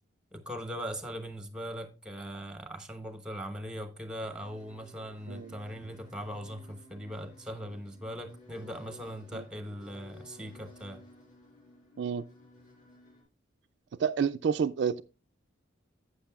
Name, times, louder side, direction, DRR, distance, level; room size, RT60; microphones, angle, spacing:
voice 1, 0.3-11.0, equal, 5° right, 0.9 m, -40 dB
sound 1, 4.2-13.2, left 1 dB, 40° left, 4.9 m, -55 dB
voice 2, 14.0-15.0, right 7 dB, 60° right, 0.3 m, -29 dB
11.5 x 8.1 x 2.3 m
head